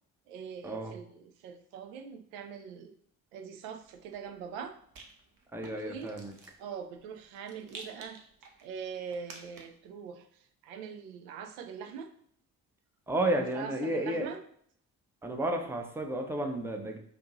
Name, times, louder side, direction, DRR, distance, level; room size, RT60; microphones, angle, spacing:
voice 1, 0.3-2.9 3.3-4.7 5.8-6.2 6.6-12.1 13.5-14.4, right 7 dB, 60° right, 6 dB, 0.5 m, -43 dB
Rattle, 3.8-9.9, right 3 dB, 40° right, 0.9 m, -53 dB
voice 2, 5.5-6.3 13.1-14.3 15.2-17.0, right 1 dB, 5° right, 3 dB, 0.6 m, -32 dB
5.1 x 2.6 x 2.9 m, 0.63 s
figure-of-eight pair, 45°, 48 cm